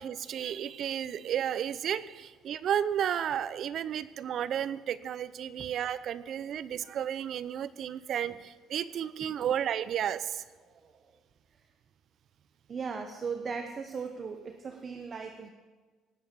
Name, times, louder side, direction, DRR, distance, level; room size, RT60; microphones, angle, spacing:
voice 1, 0.0-10.4, right 9 dB, 60° right, 16 dB, 0.7 m, -32 dB
voice 2, 10.6-11.0 12.7-15.5, right 5 dB, 40° right, 6 dB, 1.1 m, -38 dB
18.5 x 8.0 x 6.8 m, 1.4 s
cardioid pair, 90°, 0 cm